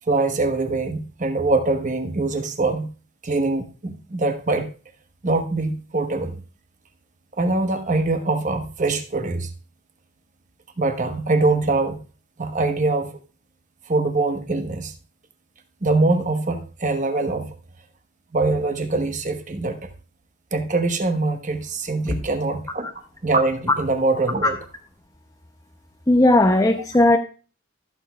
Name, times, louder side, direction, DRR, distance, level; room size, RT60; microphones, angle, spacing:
voice 1, 0.1-2.9 3.2-4.7 5.2-6.4 7.4-9.5 10.8-12.0 12.4-13.2 13.9-14.9 15.8-17.5 18.3-19.8 20.5-24.6, right 3 dB, 40° right, 7 dB, 1.1 m, -23 dB
voice 2, 26.1-27.2, left 1 dB, 15° left, 5 dB, 0.6 m, -16 dB
15.0 x 7.1 x 2.3 m, 0.35 s
head